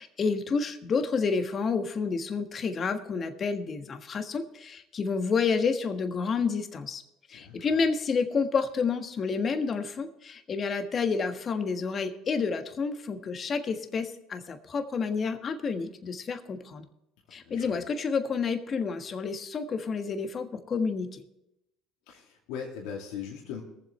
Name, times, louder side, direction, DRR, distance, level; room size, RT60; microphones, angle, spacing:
voice 1, 0.0-7.0 7.3-16.9 17.3-21.2, left 5 dB, 40° left, 7 dB, 1.5 m, -29 dB
voice 2, 7.3-7.8 17.3-17.8 22.1-23.6, left 7 dB, 80° left, -2 dB, 2.4 m, -40 dB
22.0 x 7.7 x 3.3 m, 0.85 s
supercardioid pair, 95°, 0 cm